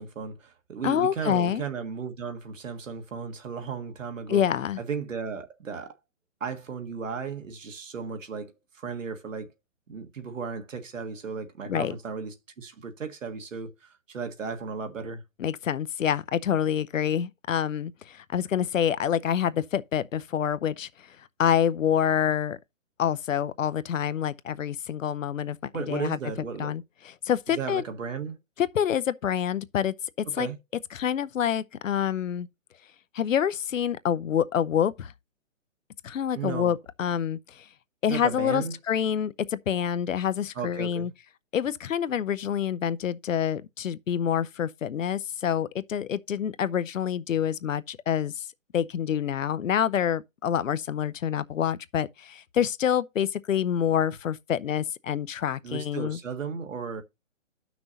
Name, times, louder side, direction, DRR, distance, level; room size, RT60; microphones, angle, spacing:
voice 1, 0.0-4.4 4.8-6.0 6.4-9.5 9.9-15.2 25.7-26.7 27.5-28.4 30.3-30.6 36.3-36.7 38.0-38.8 40.5-41.1 55.6-57.0, right 6 dB, 75° right, 1.7 m, -35 dB
voice 2, 0.8-1.6 4.3-4.8 11.7-12.0 15.4-20.9 21.4-22.6 23.0-25.6 25.9-26.2 26.6-27.8 28.6-29.9 30.3-30.5 30.9-32.5 33.1-35.1 36.0-37.7 38.0-41.1 41.5-48.5 48.7-56.2, left 9 dB, 80° left, 0.7 m, -27 dB
13.5 x 6.1 x 2.7 m
hypercardioid pair, 175°, 39 cm